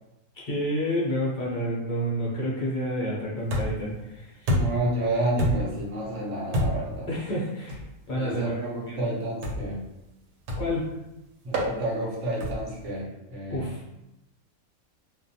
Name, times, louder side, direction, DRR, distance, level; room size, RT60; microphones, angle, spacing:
voice 1, 0.5-4.6 7.1-9.0 10.6-10.9 13.5-13.8, equal, 45° left, -6 dB, 0.6 m, -29 dB
sound 1, 3.5-3.9 4.5-4.9 5.4-5.8 6.5-7.0 7.7-7.9 9.4-9.8 10.5-10.8 11.5-11.7 12.4-12.8, equal, 90° right, 1.1 m, -27 dB
voice 2, 4.5-7.1 8.1-9.8 11.4-13.7, right 1 dB, 60° right, -4 dB, 1.0 m, -30 dB
2.4 x 2.2 x 2.7 m, 0.94 s
omnidirectional pair, 1.5 m